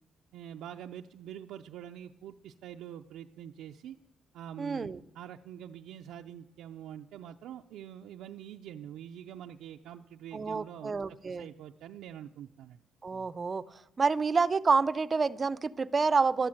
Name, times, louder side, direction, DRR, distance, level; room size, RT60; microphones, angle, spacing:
voice 1, 0.3-4.0 4.3-12.8, right 10 dB, 85° right, 3 dB, 0.5 m, -45 dB
voice 2, 4.6-5.0 10.3-11.5 13.0-16.5, right 4 dB, 35° right, 15 dB, 0.5 m, -28 dB
12.5 x 12.0 x 7.7 m, 0.86 s
cardioid pair, 90°, 0 cm